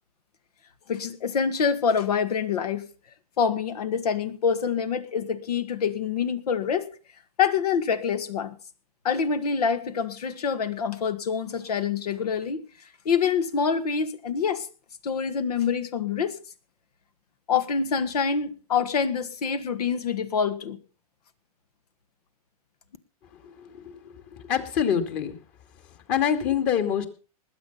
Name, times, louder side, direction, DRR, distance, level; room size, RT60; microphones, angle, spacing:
voice 1, 0.9-2.8 3.4-6.9 7.4-8.6 9.0-12.7 13.1-14.7 15.0-16.4 17.5-20.8, left 6 dB, 75° left, 12 dB, 1.9 m, -26 dB
voice 2, 23.4-24.0 24.5-25.3 26.1-27.1, left 8 dB, 40° left, 8 dB, 2.7 m, -25 dB
20.0 x 8.3 x 5.6 m, 0.38 s
hypercardioid pair, 130°, 20 cm